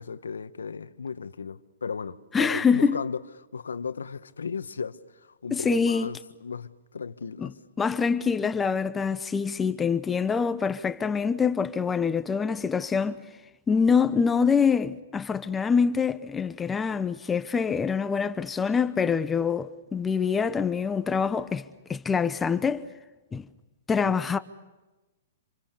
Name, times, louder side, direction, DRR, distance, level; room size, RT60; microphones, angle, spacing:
voice 1, 0.0-7.5 24.0-24.1, left 5 dB, 90° left, 1.2 m, -36 dB
voice 2, 2.3-3.0 5.5-6.1 7.4-7.5 7.8-13.2 13.7-22.9 23.3-23.5 23.9-24.4, left 6 dB, 15° left, 0.9 m, -25 dB
27.5 x 26.5 x 6.7 m
hypercardioid pair, 130°, 0 cm